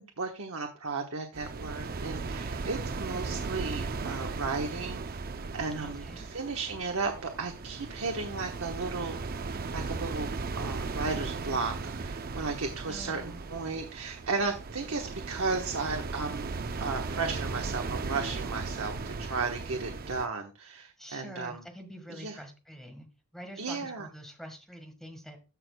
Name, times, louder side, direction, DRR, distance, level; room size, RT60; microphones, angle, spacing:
voice 1, 0.0-5.1 5.5-9.2 9.7-21.6 22.1-22.4 23.6-24.1, right 4 dB, 70° right, 3 dB, 1.2 m, -34 dB
sound 1, 1.3-20.3, right 4 dB, 45° right, 0.5 m, -37 dB
voice 2, 5.8-6.3 12.9-13.4 21.0-23.1 23.3-25.4, equal, ahead, 5 dB, 1.5 m, -45 dB
14.0 x 6.2 x 2.3 m, 0.30 s
head